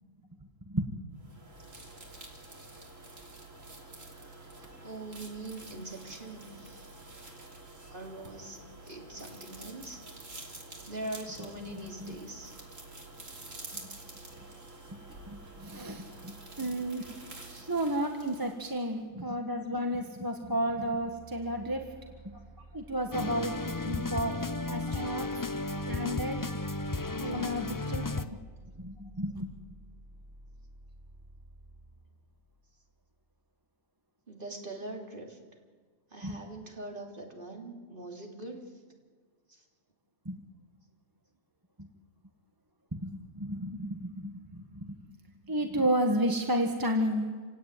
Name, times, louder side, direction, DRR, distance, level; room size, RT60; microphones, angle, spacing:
sound 1, 1.2-19.0, right 2 dB, 75° right, 3.8 m, -48 dB
voice 1, 4.1-4.5 4.8-7.0 7.9-10.3 10.9-12.5 17.5-18.0 22.3-22.7 24.8-25.1 27.9-28.0 34.3-35.4 36.1-38.8 39.5-39.7, right 2 dB, 40° right, 1 dB, 3.5 m, -43 dB
voice 2, 15.3-17.1 17.7-22.0 22.7-23.6 23.8-24.3 24.7-25.3 25.9-26.5 27.2-28.4 28.8-29.5 36.2-36.4 40.2-40.4 41.8-41.9 42.9-45.0 45.4-47.3, equal, 15° right, 3 dB, 1.6 m, -32 dB
sound 2, 20.5-33.2, right 1 dB, 60° right, 6.6 m, -53 dB
sound 3, 23.1-28.2, left 3 dB, 25° left, 0.5 m, -34 dB
28.0 x 17.5 x 9.3 m, 1.5 s
omnidirectional pair, 1.4 m